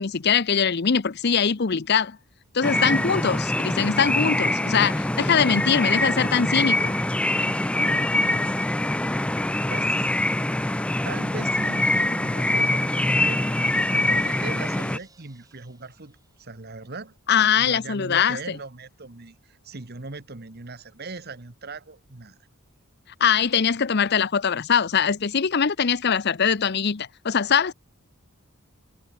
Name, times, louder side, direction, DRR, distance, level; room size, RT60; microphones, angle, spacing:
voice 1, 0.0-2.2 2.5-7.0 17.3-18.4 23.2-27.7, left 7 dB, 50° left, 0.7 m, -22 dB
sound 1, 2.6-15.0, left 1 dB, 5° left, 0.3 m, -24 dB
voice 2, 9.7-10.0 11.0-12.9 13.2-17.2 17.6-22.4, right 3 dB, 45° right, 1.3 m, -39 dB
Crash cymbal, 11.5-16.7, right 3 dB, 15° right, 7.8 m, -57 dB
head